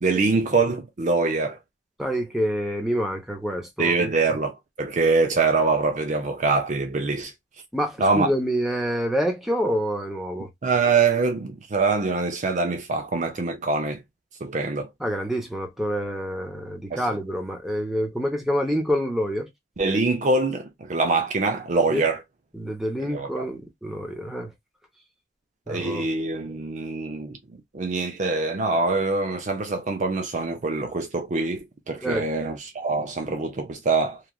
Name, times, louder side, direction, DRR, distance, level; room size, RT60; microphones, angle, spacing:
voice 1, 0.0-1.6 3.8-7.3 8.0-8.3 10.6-14.0 14.4-14.9 16.9-17.2 19.8-22.2 23.0-23.5 25.7-34.2, right 3 dB, 40° right, 0.5 m, -24 dB
voice 2, 2.0-4.1 7.7-10.5 15.0-19.5 21.9-22.0 22.5-24.5 25.7-26.1 32.0-32.2, equal, ahead, 0.7 m, -27 dB
3.1 x 2.4 x 2.2 m
head